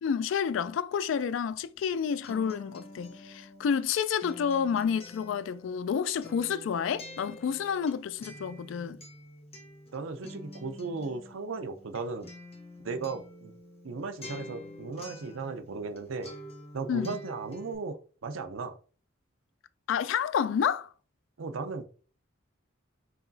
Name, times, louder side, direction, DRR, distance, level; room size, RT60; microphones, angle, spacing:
voice 1, 0.0-9.0 16.9-17.2 19.9-20.9, left 7 dB, 65° left, 0.3 m, -29 dB
Acoustic guitar, 1.8-16.0 16.2-17.7, left 1 dB, 30° left, 0.9 m, -48 dB
voice 2, 9.9-12.3 12.8-13.5 13.8-16.3 16.7-18.8 21.4-21.9, right 4 dB, 80° right, 0.6 m, -36 dB
4.8 x 3.0 x 2.7 m
head